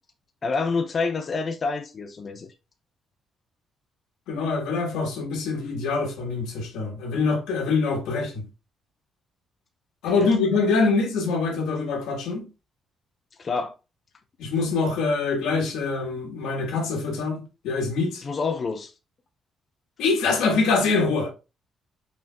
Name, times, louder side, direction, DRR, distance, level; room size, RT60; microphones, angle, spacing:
voice 1, 0.4-2.5 10.2-10.3 13.4-13.7 18.2-18.9, left 4 dB, 40° left, 0.7 m, -27 dB
voice 2, 4.3-8.5 10.0-12.5 14.4-18.2 20.0-21.3, left 4 dB, 90° left, 1.4 m, -24 dB
5.2 x 4.4 x 2.2 m
cardioid pair, 90°, 0 cm